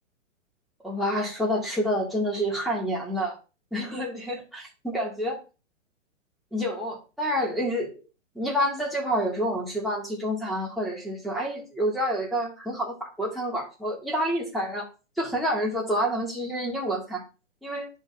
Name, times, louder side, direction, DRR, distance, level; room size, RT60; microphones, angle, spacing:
voice 1, 0.8-3.3 3.7-5.4 6.5-7.9 8.3-14.8 15.2-17.2 17.6-17.9, equal, ahead, -5 dB, 2.6 m, -28 dB
11.5 x 4.5 x 2.8 m, 0.31 s
hypercardioid pair, 135°, 37 cm